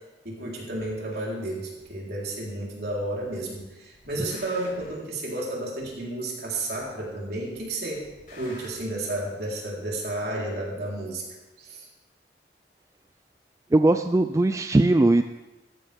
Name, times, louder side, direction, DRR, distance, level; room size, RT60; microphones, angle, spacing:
voice 1, 0.2-8.0 8.3-11.2 11.6-11.9, right 1 dB, 60° right, -3 dB, 4.0 m, -32 dB
sound 1, 0.8-0.9 1.8-1.9 2.8-3.3 3.5-5.0 5.8-5.9 6.8-7.3 7.5-8.8, left 1 dB, 55° left, 5.3 m, -48 dB
voice 2, 13.7-15.2, right 2 dB, 15° right, 8 dB, 0.3 m, -19 dB
15.5 x 14.0 x 3.6 m, 1.1 s
head